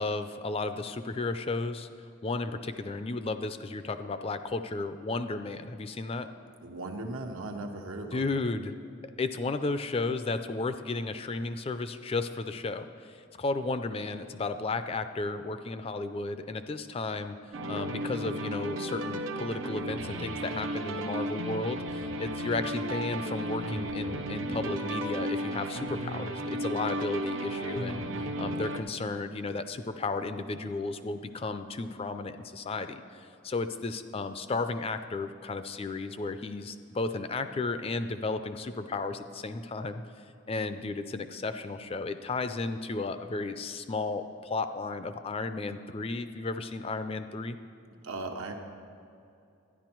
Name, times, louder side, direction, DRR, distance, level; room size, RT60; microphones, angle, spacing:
voice 1, 0.0-1.9 2.2-6.3 8.1-8.7 9.2-17.4 17.7-40.0 40.5-47.6, left 3 dB, 30° left, 10 dB, 0.4 m, -34 dB
voice 2, 6.6-8.3 48.0-48.5, right 2 dB, 85° right, 3 dB, 1.1 m, -37 dB
sound 1, 17.5-28.8, right 1 dB, 65° right, 0.8 m, -34 dB
12.0 x 10.5 x 4.5 m, 2.6 s
head